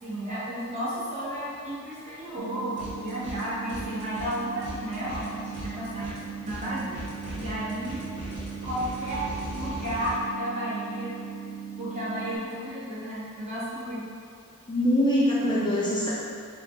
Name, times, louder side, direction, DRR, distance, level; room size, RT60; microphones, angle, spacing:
voice 1, 0.0-6.2 6.4-7.1 7.3-8.1 8.6-11.2 11.8-14.0, equal, 30° right, -9 dB, 0.9 m, -33 dB
sound 1, 2.4-12.4, right 7 dB, 75° right, 0.4 m, -39 dB
sound 2, 2.8-3.4 3.7-10.2, equal, 55° right, 0.8 m, -40 dB
voice 2, 14.7-16.1, equal, 20° left, -6 dB, 0.3 m, -23 dB
3.6 x 2.0 x 3.6 m, 2.3 s
head